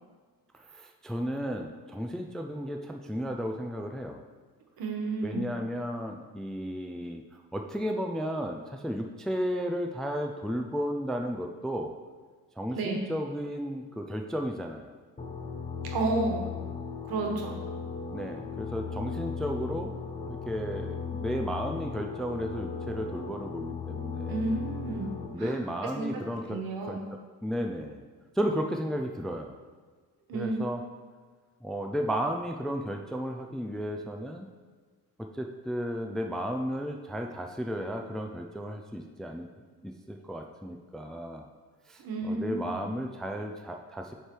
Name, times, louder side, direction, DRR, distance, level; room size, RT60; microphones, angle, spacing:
voice 1, 0.7-4.2 5.2-11.9 12.6-14.9 18.1-19.9 20.3-24.5 25.3-28.0 28.4-29.6 30.3-30.8 31.6-34.5 35.3-39.5 39.8-41.5 41.9-44.1, equal, ahead, 4 dB, 0.3 m, -34 dB
voice 2, 4.8-5.5 12.7-13.1 15.9-16.5 17.0-17.6 24.3-25.5 25.9-26.2 26.5-27.0 30.3-30.7 42.0-42.8, right 2 dB, 75° right, 1 dB, 1.3 m, -31 dB
sound 1, 15.2-25.3, left 5 dB, 20° left, 0.7 m, -37 dB
7.6 x 3.4 x 4.5 m, 1.5 s
cardioid pair, 105°, 36 cm